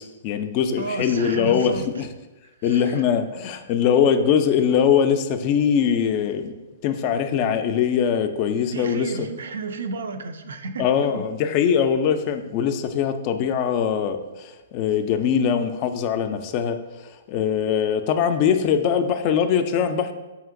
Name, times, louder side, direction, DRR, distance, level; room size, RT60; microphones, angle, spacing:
voice 1, 0.0-2.1 2.6-6.5 6.8-9.3 10.8-20.1, left 8 dB, 40° left, 8 dB, 0.3 m, -22 dB
voice 2, 0.8-2.1 2.6-3.0 8.7-11.3, right 3 dB, 75° right, 8 dB, 0.3 m, -32 dB
4.9 x 2.8 x 2.5 m, 1.1 s
hypercardioid pair, 120°, 0 cm